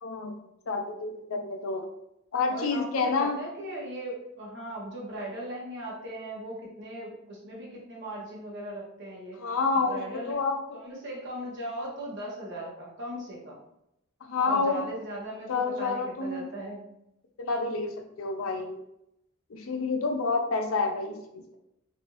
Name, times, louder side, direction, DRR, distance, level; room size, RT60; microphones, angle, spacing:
voice 1, 0.0-0.3 0.7-1.8 2.3-3.4 9.4-10.0 10.3-10.8 14.2-14.9 15.5-16.5 17.4-18.8 19.5-21.6, left 4 dB, 75° left, 4 dB, 0.5 m, -29 dB
voice 2, 2.5-9.4 9.9-10.3 10.7-13.6 14.4-16.8, right 1 dB, 60° right, -4 dB, 1.1 m, -38 dB
3.3 x 2.6 x 2.9 m, 0.82 s
head